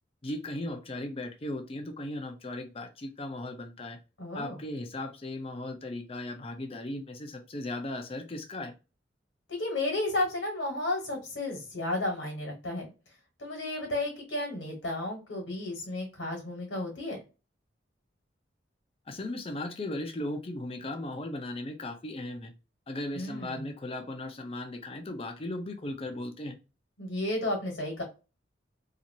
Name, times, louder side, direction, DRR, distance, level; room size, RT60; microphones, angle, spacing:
voice 1, 0.2-4.0 4.3-8.7 19.1-22.5 22.9-26.6, left 1 dB, 30° left, 0.5 m, -37 dB
voice 2, 4.2-4.6 9.5-12.9 13.4-17.2 23.1-23.7 27.0-28.0, left 1 dB, 80° left, 1.2 m, -33 dB
2.9 x 2.4 x 2.6 m
head